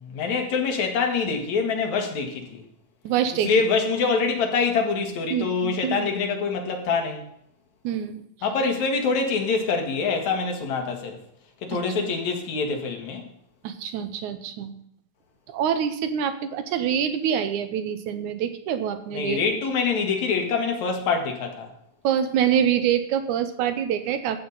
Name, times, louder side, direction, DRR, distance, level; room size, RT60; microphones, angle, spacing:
voice 1, 0.0-2.6 3.4-7.2 8.4-11.2 11.6-13.2 19.1-21.7, left 5 dB, 75° left, 3.0 m, -25 dB
voice 2, 3.0-3.5 5.3-6.1 7.8-8.2 11.7-11.8 13.6-14.7 15.5-19.4 22.0-24.4, right 9 dB, 90° right, 2.4 m, -25 dB
14.0 x 8.6 x 4.1 m
omnidirectional pair, 3.3 m